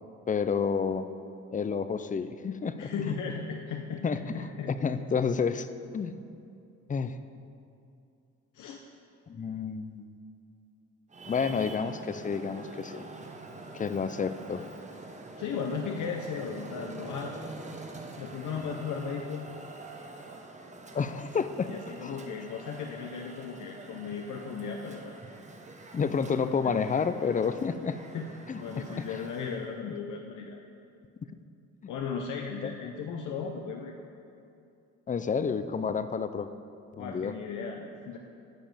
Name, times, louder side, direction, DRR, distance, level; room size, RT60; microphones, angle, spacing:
voice 1, 0.3-1.1 1.5-2.9 4.0-5.7 5.9-6.2 6.9-7.2 9.3-10.1 11.3-13.0 13.7-14.6 20.9-21.7 22.0-22.2 25.9-28.0 28.5-28.6 29.0-29.1 29.9-30.0 32.6-32.7 35.1-36.5 36.9-37.3, left 6 dB, 25° left, 11 dB, 0.5 m, -30 dB
voice 2, 2.8-4.7 8.5-8.8 15.4-17.3 18.2-19.5 21.7-25.1 26.6-26.8 28.1-28.3 28.6-30.6 31.9-33.9 37.0-38.2, left 6 dB, 75° left, 2 dB, 0.8 m, -36 dB
Traffic noise roadway noise, 11.1-29.8, right 2 dB, 25° right, 1.0 m, -46 dB
11.5 x 5.2 x 7.4 m, 2.5 s
cardioid pair, 90°, 30 cm